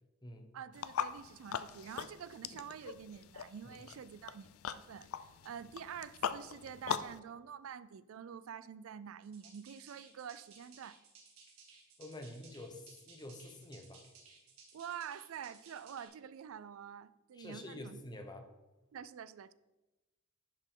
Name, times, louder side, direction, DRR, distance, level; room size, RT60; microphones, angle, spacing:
voice 1, 0.5-11.0 14.7-18.0 18.9-19.5, right 8 dB, 65° right, 0.3 m, -47 dB
sound 1, 0.7-7.2, left 7 dB, 70° left, 0.4 m, -41 dB
sound 2, 9.2-16.1, right 4 dB, 90° right, 2.0 m, -59 dB
voice 2, 12.0-14.0 17.3-18.4, left 1 dB, 20° left, 0.8 m, -48 dB
10.5 x 5.1 x 3.7 m
head